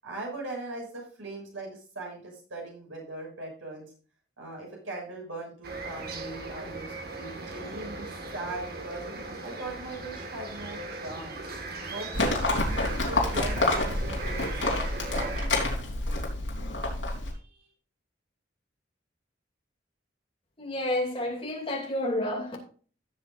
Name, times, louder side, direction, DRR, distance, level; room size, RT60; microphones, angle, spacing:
voice 1, 0.0-3.9 4.4-9.0 9.4-11.5 11.9-15.7 17.3-17.6, right 2 dB, 90° right, 6.3 m, -40 dB
sound 1, 5.6-15.5, right 3 dB, 50° right, 1.8 m, -38 dB
Livestock farm animals working animals, 12.1-17.3, left 2 dB, 70° left, 3.6 m, -28 dB
voice 2, 20.6-22.6, left 1 dB, 30° left, 2.7 m, -30 dB
16.0 x 7.6 x 2.6 m
head